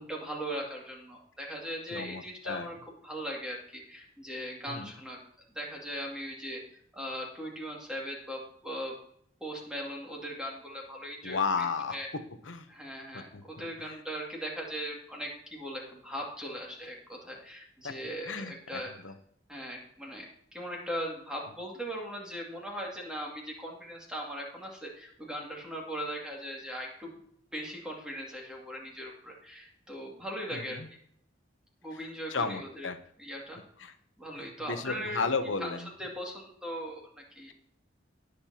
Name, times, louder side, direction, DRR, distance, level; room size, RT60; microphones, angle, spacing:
voice 1, 0.0-5.2 5.5-8.9 9.4-12.1 12.7-18.9 19.5-27.1 27.5-30.8 31.8-32.9 33.2-33.6 34.2-35.2 35.6-37.5, equal, 5° right, -2 dB, 2.3 m, -39 dB
voice 2, 1.9-2.7 4.7-4.9 11.2-12.0 12.4-12.7 13.1-14.0 17.8-17.9 18.2-19.1 30.5-30.9 31.9-33.0 33.8-33.9 34.4-35.9, left 4 dB, 90° left, 9 dB, 0.8 m, -34 dB
19.0 x 6.6 x 2.9 m, 0.66 s
head